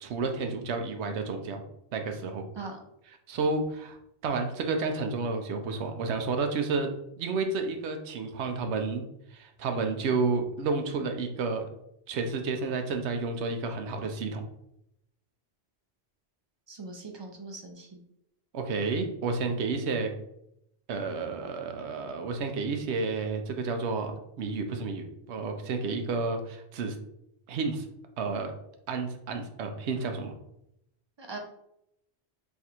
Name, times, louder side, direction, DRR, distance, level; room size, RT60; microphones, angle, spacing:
voice 1, 0.0-1.6 1.9-2.4 3.3-4.0 4.2-6.9 7.2-9.0 9.3-11.6 12.1-14.4 18.5-20.1 20.9-24.1 24.4-27.0 27.5-27.9 28.2-28.5 28.9-30.3, right 4 dB, 80° right, 5 dB, 0.9 m, -31 dB
voice 2, 16.7-18.0 31.2-31.4, right 3 dB, 45° right, 3 dB, 0.3 m, -41 dB
3.4 x 2.4 x 4.2 m, 0.80 s
omnidirectional pair, 1.1 m